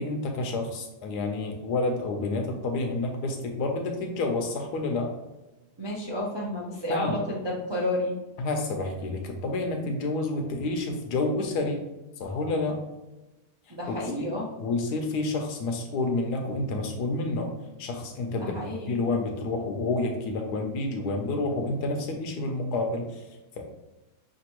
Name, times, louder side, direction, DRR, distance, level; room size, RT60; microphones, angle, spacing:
voice 1, 0.0-5.1 6.9-7.1 8.4-11.8 12.2-12.8 13.9-14.2 14.6-17.5 17.8-18.5 18.9-23.2 23.6-23.7, left 2 dB, 75° left, 3 dB, 1.3 m, -29 dB
voice 2, 5.8-8.1 13.7-14.5 18.3-18.9, left 1 dB, 35° right, -4 dB, 0.4 m, -31 dB
5.9 x 2.6 x 3.0 m, 1.0 s
omnidirectional pair, 1.7 m